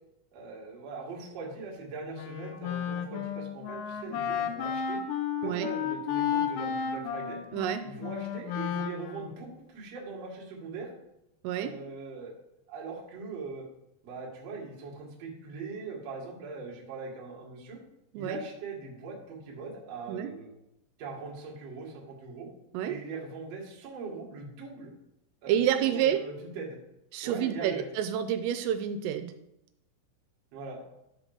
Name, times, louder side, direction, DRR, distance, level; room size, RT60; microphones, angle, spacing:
voice 1, 0.3-5.0 5.4-7.4 7.8-10.9 11.6-12.3 12.7-13.7 14.0-17.8 18.1-20.5 21.0-22.5 22.8-24.9 25.4-26.8 27.2-27.9 30.5-30.8, right 4 dB, 55° right, -3 dB, 1.9 m, -41 dB
Wind instrument woodwind instrument, 2.1-9.5, left 8 dB, 85° left, 2.5 m, -33 dB
voice 2, 7.5-7.9 11.4-11.7 18.1-18.4 20.1-20.3 22.7-23.0 25.5-26.2 27.1-29.3, right 10 dB, 85° right, 8 dB, 3.1 m, -28 dB
11.0 x 3.8 x 6.5 m, 0.86 s
omnidirectional pair, 5.9 m